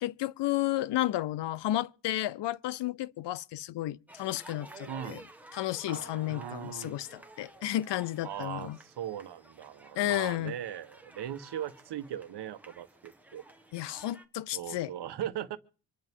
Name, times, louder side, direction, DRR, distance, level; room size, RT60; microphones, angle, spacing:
voice 1, 0.0-5.2 5.5-8.8 10.0-10.5 13.7-14.9, left 14 dB, 90° left, 0.6 m, -32 dB
sound 1, 4.1-14.2, right 2 dB, 5° right, 1.2 m, -53 dB
voice 2, 4.9-5.2 6.3-6.9 8.2-13.4 14.5-15.6, right 10 dB, 80° right, 1.2 m, -39 dB
sound 2, 5.9-8.6, left 1 dB, 50° left, 5.3 m, -51 dB
26.0 x 11.0 x 3.6 m
wide cardioid pair, 160°, 41 cm